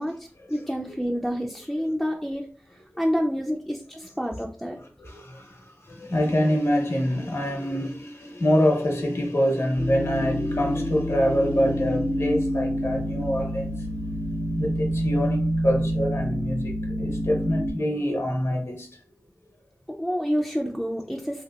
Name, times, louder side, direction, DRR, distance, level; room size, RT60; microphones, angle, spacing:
voice 1, 0.0-4.8 19.9-21.4, equal, ahead, 0.3 m, -28 dB
voice 2, 5.0-5.5 5.9-13.7 14.6-18.9, equal, 70° left, 0.8 m, -25 dB
sound 1, 9.8-17.7, equal, 70° right, 0.9 m, -28 dB
2.9 x 2.7 x 2.2 m
wide cardioid pair, 60°, 5 cm